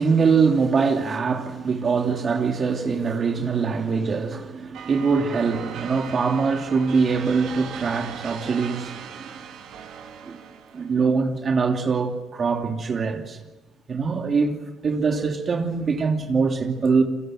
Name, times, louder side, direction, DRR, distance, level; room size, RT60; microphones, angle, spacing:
voice 1, 0.0-9.3 10.2-10.4 10.7-13.4 13.9-17.0, right 5 dB, 40° right, 2.9 m, -23 dB
sound 1, 4.7-11.0, right 7 dB, 70° right, 4.6 m, -39 dB
28.0 x 23.5 x 7.7 m
supercardioid pair, 75°, 0 cm